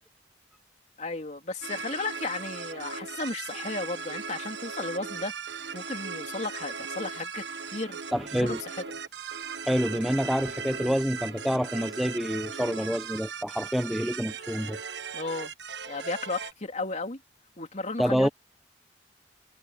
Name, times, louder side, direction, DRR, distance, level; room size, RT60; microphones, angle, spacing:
voice 1, 1.0-5.3 5.7-7.4 7.7-8.0 8.3-8.7 15.1-15.5 15.8-17.2 17.6-18.3, left 3 dB, 40° left, 2.9 m, -34 dB
sound 1, 1.6-16.5, right 5 dB, 70° right, 1.3 m, -38 dB
voice 2, 8.1-8.6 9.6-14.8 18.0-18.3, equal, ahead, 0.6 m, -27 dB
head